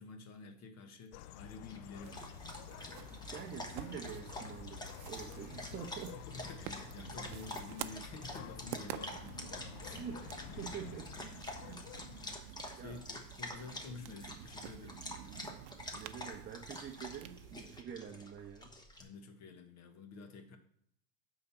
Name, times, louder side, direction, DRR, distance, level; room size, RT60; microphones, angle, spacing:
voice 1, 0.0-2.4 6.1-10.0 11.6-11.8 12.1-15.0 19.0-20.6, left 4 dB, 40° left, 7 dB, 1.4 m, -50 dB
sound 1, 1.1-12.4, left 13 dB, 60° left, 0.5 m, -50 dB
Dog, 1.6-19.0, left 1 dB, 10° left, 1.1 m, -47 dB
sound 2, 2.0-17.8, right 12 dB, 65° right, 0.7 m, -50 dB
voice 2, 3.3-6.2 9.9-11.8 12.4-12.5 12.8-13.0 13.5-13.6 16.0-18.7, right 7 dB, 25° right, 2 dB, 0.9 m, -46 dB
10.5 x 4.0 x 7.0 m, 0.69 s
supercardioid pair, 145°, 43 cm